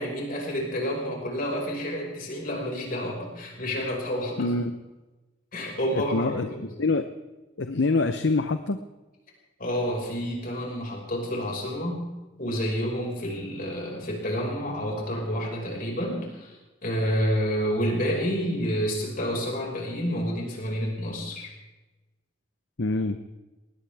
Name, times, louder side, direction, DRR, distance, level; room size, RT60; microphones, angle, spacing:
voice 1, 0.0-4.5 5.5-6.4 9.6-12.0 12.4-21.5, equal, 50° left, -1 dB, 5.4 m, -29 dB
voice 2, 4.4-4.7 5.9-7.1 7.6-8.8 22.8-23.2, left 3 dB, 65° left, 9 dB, 0.8 m, -25 dB
21.0 x 19.0 x 3.5 m, 1.1 s
head